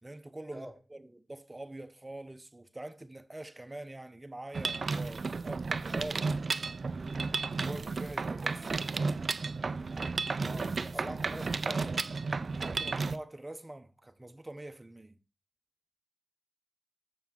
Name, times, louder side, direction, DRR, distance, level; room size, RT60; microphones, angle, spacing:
voice 1, 0.0-6.3 7.5-8.7 10.4-10.7 12.5-15.2, right 1 dB, 25° right, 0.9 m, -45 dB
Mechanisms, 4.5-13.2, right 4 dB, 70° right, 0.4 m, -33 dB
voice 2, 10.4-12.0, equal, ahead, 2.2 m, -44 dB
7.1 x 6.9 x 3.9 m
wide cardioid pair, 70°, 0 cm